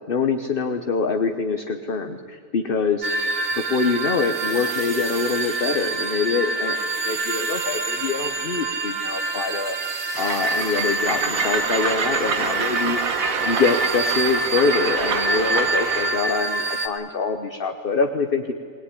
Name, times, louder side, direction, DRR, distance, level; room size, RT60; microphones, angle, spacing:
voice 1, 0.1-3.1 3.6-9.8 10.2-13.0 13.5-18.5, left 4 dB, 40° left, 6 dB, 1.1 m, -24 dB
sound 1, 3.0-16.9, right 2 dB, 50° right, 1.7 m, -26 dB
Train, 10.1-16.2, right 5 dB, 65° right, 1.7 m, -26 dB
20.5 x 20.5 x 9.9 m, 2.4 s
omnidirectional pair, 1.6 m